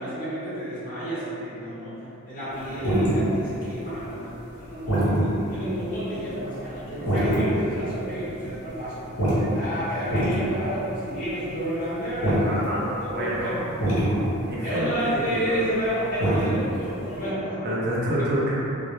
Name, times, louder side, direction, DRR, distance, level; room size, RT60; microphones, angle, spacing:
voice 1, 0.0-5.1 5.5-9.1 9.3-13.8 14.6-17.7, equal, 40° left, -11 dB, 0.8 m, -30 dB
sound 1, 2.5-3.2 3.8-4.1 4.6-5.6 5.9-6.0 6.4-6.7 7.1-7.7 7.9-8.1 8.4-11.5 11.9-12.7 13.2-13.5 13.8-14.5 15.0-15.1 15.3-15.7 16.0-16.5 16.8-17.2, right 1 dB, 85° left, 0.8 m, -24 dB
voice 2, 12.4-13.6 14.4-15.6 17.6-18.5, right 1 dB, 50° right, -7 dB, 0.5 m, -28 dB
2.1 x 2.0 x 2.9 m, 2.8 s
head